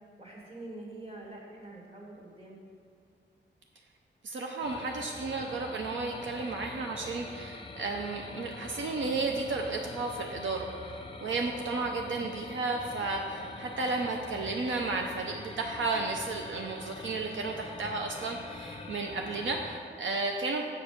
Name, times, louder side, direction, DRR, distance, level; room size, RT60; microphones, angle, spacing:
voice 1, 0.2-2.6, right 2 dB, 30° right, -3 dB, 1.9 m, -45 dB
voice 2, 4.2-20.7, right 3 dB, 80° right, 2 dB, 0.6 m, -33 dB
sound 1, 4.6-19.8, left 3 dB, 25° left, 0.6 m, -44 dB
7.3 x 6.8 x 5.2 m, 2.1 s
wide cardioid pair, 120°, 20 cm